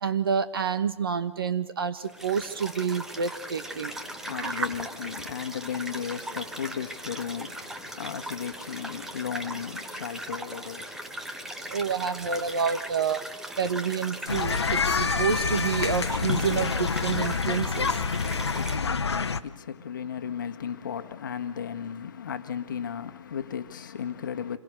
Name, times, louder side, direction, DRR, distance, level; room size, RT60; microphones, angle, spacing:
voice 1, 0.0-3.9 4.4-4.6 11.7-13.2 13.6-17.9, right 6 dB, 50° right, 1.5 m, -28 dB
sound 1, 2.0-18.8, right 1 dB, 5° right, 0.8 m, -39 dB
voice 2, 3.6-12.0 18.0-24.6, left 8 dB, 40° left, 1.6 m, -36 dB
sound 2, 14.3-19.4, left 5 dB, 60° left, 1.2 m, -27 dB
27.5 x 21.5 x 6.6 m
figure-of-eight pair, 140°, 16 cm